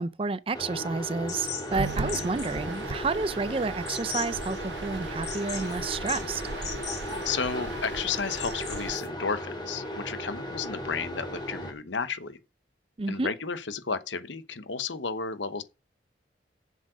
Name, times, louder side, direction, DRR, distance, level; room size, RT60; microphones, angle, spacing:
voice 1, 0.0-6.4 13.0-13.3, right 4 dB, 30° right, 0.4 m, -30 dB
sound 1, 0.5-11.7, left 1 dB, 25° left, 2.6 m, -37 dB
sound 2, 1.3-9.1, left 7 dB, 40° left, 2.8 m, -40 dB
sound 3, 1.7-9.0, right 4 dB, 75° right, 0.7 m, -38 dB
voice 2, 7.2-12.4 13.1-15.6, left 5 dB, 85° left, 1.0 m, -32 dB
7.6 x 7.4 x 6.2 m
head